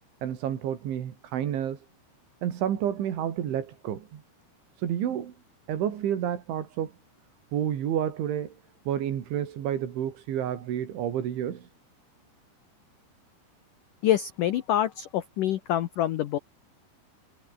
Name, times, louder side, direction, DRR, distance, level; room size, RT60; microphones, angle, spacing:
voice 1, 0.2-1.9 2.4-4.2 4.8-5.3 5.7-6.9 7.5-8.6 8.9-11.7, right 10 dB, 85° right, 5.1 m, -30 dB
voice 2, 14.0-16.4, left 12 dB, 75° left, 1.9 m, -26 dB
omnidirectional pair, 5.3 m